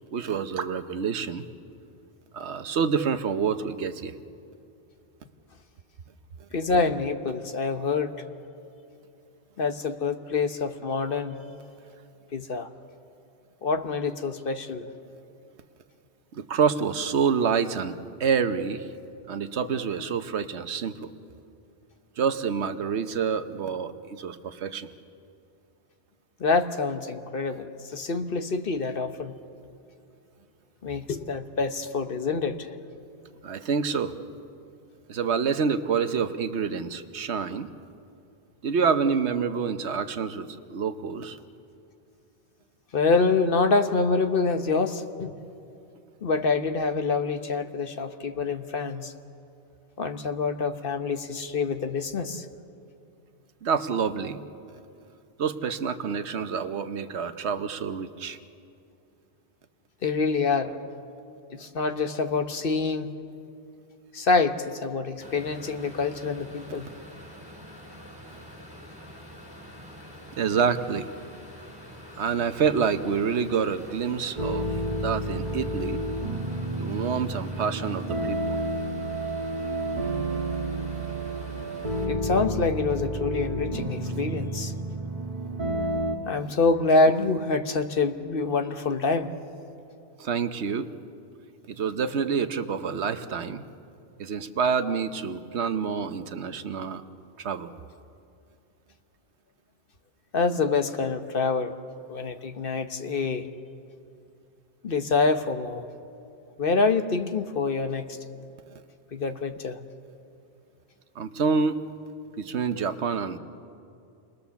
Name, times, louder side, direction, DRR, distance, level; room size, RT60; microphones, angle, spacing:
voice 1, 0.1-1.4 2.3-4.1 16.3-18.9 19.3-21.1 22.2-24.9 33.4-34.1 35.1-37.7 38.6-41.4 53.6-54.4 55.4-58.4 70.4-71.1 72.2-74.7 75.0-76.0 76.8-78.6 90.2-90.9 91.7-93.6 94.2-97.0 97.4-97.7 111.2-111.8 112.4-113.4, right 6 dB, 75° right, 10 dB, 1.2 m, -27 dB
voice 2, 6.5-8.2 9.6-11.4 12.3-12.7 13.6-14.9 26.4-29.3 30.8-32.7 42.9-45.3 46.2-49.1 50.0-52.5 60.0-60.8 61.5-63.1 64.1-66.9 82.1-84.7 85.9-86.0 86.3-89.3 100.3-101.8 102.1-103.5 104.8-105.9 106.6-108.2 109.1-109.8, left 4 dB, 55° left, 7 dB, 1.1 m, -26 dB
sound 1, 65.2-82.1, equal, 5° right, 4.6 m, -46 dB
sound 2, 74.3-86.2, right 1 dB, 40° right, 1.7 m, -30 dB
28.5 x 20.5 x 7.1 m, 2.6 s
omnidirectional pair, 1.1 m